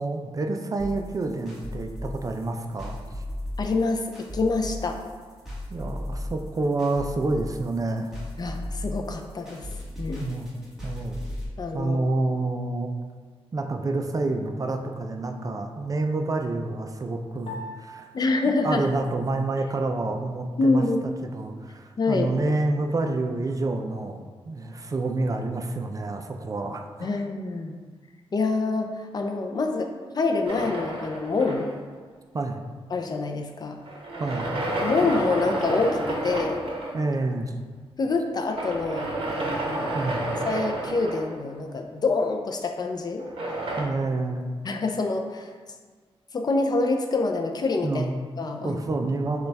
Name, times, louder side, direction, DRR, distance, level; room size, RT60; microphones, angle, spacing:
voice 1, 0.0-3.2 5.7-8.1 10.2-10.6 10.8-11.2 11.7-12.9 13.5-18.1 18.6-20.8 21.2-27.2 32.3-32.6 34.2-34.5 36.9-37.5 39.9-40.2 43.8-44.5 47.8-48.2 48.6-49.5, right 2 dB, 35° right, 4 dB, 0.4 m, -28 dB
sound 1, 0.8-11.5, left 1 dB, 5° right, 1.3 m, -36 dB
voice 2, 3.6-5.0 8.4-9.7 10.0-10.3 11.6-12.0 18.1-18.9 20.6-21.0 22.0-22.3 27.0-27.8 28.3-31.7 32.9-33.8 34.8-36.6 38.0-39.1 39.5-40.0 40.4-43.2 44.6-45.5 46.3-48.1 48.4-48.8, left 3 dB, 40° left, 4 dB, 0.4 m, -26 dB
Piano, 17.5-20.0, left 1 dB, 70° left, 0.8 m, -44 dB
sound 2, 30.5-32.0 33.9-37.0 38.5-41.7 43.2-43.8, right 1 dB, 60° right, 0.9 m, -30 dB
6.5 x 2.3 x 3.3 m, 1.5 s
wide cardioid pair, 105°, 10 cm